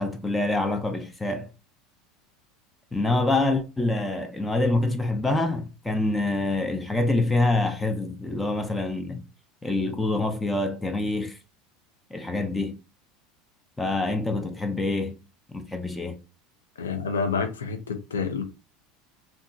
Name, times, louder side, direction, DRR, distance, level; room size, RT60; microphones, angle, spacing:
voice 1, 0.0-1.5 2.9-9.2 9.6-11.4 12.1-12.8 13.8-15.2 15.5-16.2, left 2 dB, 10° left, 0.4 m, -26 dB
voice 2, 16.8-18.4, left 5 dB, 80° left, 0.5 m, -28 dB
2.8 x 2.3 x 2.5 m
figure-of-eight pair, 75°, 0 cm